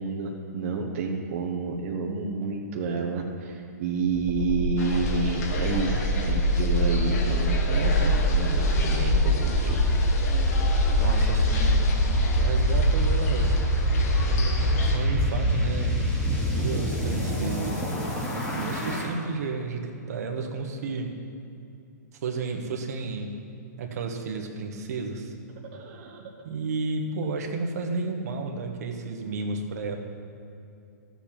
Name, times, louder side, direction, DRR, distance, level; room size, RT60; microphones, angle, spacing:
voice 1, 0.0-9.8 10.1-10.2 25.7-26.3, right 4 dB, 45° right, 1 dB, 1.2 m, -30 dB
sound 1, 4.1-19.0, equal, 15° left, 2.6 m, -24 dB
sound 2, 4.8-15.0, left 4 dB, 55° left, 1.5 m, -36 dB
voice 2, 10.9-11.8 12.4-13.6 14.8-16.0 16.3-17.8 18.5-21.2 22.2-23.3 23.8-25.3 26.4-30.0, right 4 dB, 60° right, 3 dB, 1.3 m, -32 dB
13.0 x 7.2 x 5.8 m, 2.6 s
hypercardioid pair, 145°, 10 cm